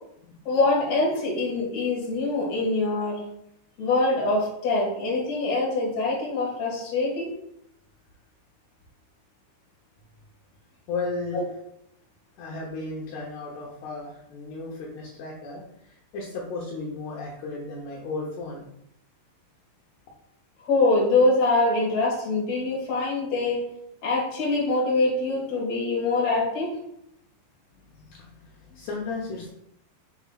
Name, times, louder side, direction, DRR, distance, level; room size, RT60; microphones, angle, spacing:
voice 1, 0.4-3.2 3.8-7.3 11.3-11.4 20.7-23.6 24.0-26.8, left 2 dB, 45° left, -3 dB, 2.7 m, -24 dB
voice 2, 10.9-11.4 12.4-18.6 27.9-29.5, left 3 dB, 70° left, -3 dB, 2.9 m, -35 dB
7.9 x 7.0 x 2.5 m, 0.77 s
omnidirectional pair, 5.2 m